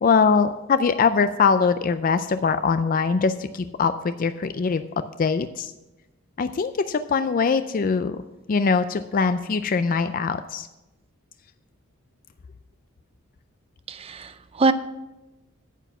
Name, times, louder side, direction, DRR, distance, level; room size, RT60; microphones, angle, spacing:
voice 1, 0.0-5.7 6.4-8.2 8.5-10.7, left 5 dB, 40° left, 11 dB, 0.3 m, -22 dB
voice 2, 13.9-14.7, right 3 dB, 25° right, 12 dB, 0.4 m, -23 dB
9.1 x 8.0 x 5.9 m, 1.0 s
head